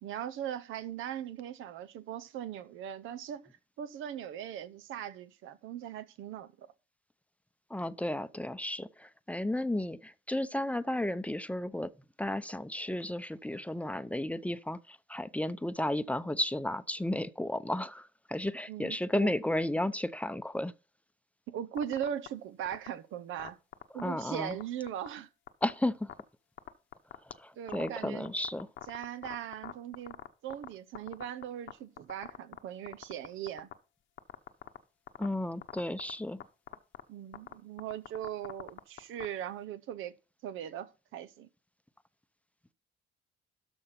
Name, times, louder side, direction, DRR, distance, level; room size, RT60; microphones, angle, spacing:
voice 1, 0.0-3.4 3.8-6.7 18.7-19.3 21.5-23.6 23.9-25.3 27.6-28.3 28.9-33.7 37.1-40.1 40.4-41.5, right 10 dB, 85° right, 0.8 m, -39 dB
voice 2, 7.7-11.9 12.2-20.7 24.0-24.6 25.6-26.1 27.4-28.7 35.2-36.4, left 1 dB, 5° left, 0.6 m, -33 dB
sound 1, 21.8-22.3 22.7-22.9 23.4-24.6 24.9-25.1 25.5-25.7 26.1-26.2 26.6-27.3 27.7-30.7 30.9-31.7 32.0-32.6 32.9-33.7 34.2-34.8 35.1-35.3 35.6-36.1 36.4-36.5 36.7-37.0 37.3-39.3, left 11 dB, 75° left, 1.0 m, -42 dB
13.0 x 4.4 x 5.8 m
cardioid pair, 90°, 20 cm